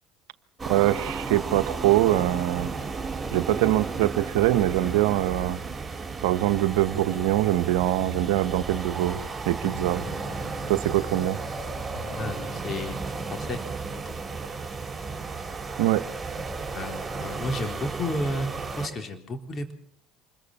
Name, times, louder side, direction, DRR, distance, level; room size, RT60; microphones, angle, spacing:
sound 1, 0.6-18.9, right 4 dB, 20° right, 4.9 m, -34 dB
voice 1, 0.7-2.7 3.3-5.6 6.2-9.2 9.5-10.0 10.7-11.4 15.8-16.0, right 14 dB, 75° right, 11 dB, 1.0 m, -23 dB
sound 2, 6.6-12.7, left 2 dB, 70° left, 3.5 m, -45 dB
voice 2, 12.2-13.6 14.1-14.2 16.7-19.7, left 1 dB, 40° left, 6 dB, 3.8 m, -32 dB
26.0 x 21.5 x 5.7 m, 0.65 s
hypercardioid pair, 70°, 0 cm